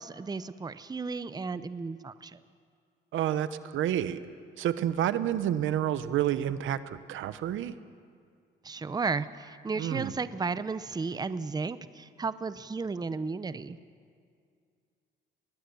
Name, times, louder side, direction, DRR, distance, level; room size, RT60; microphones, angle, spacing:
voice 1, 0.0-2.4 8.6-13.8, right 4 dB, 20° right, 14 dB, 0.7 m, -34 dB
voice 2, 3.1-4.2 4.6-7.7 9.8-10.1, right 11 dB, 80° right, 13 dB, 0.9 m, -29 dB
21.0 x 20.0 x 6.9 m, 2.2 s
cardioid pair, 90°, 20 cm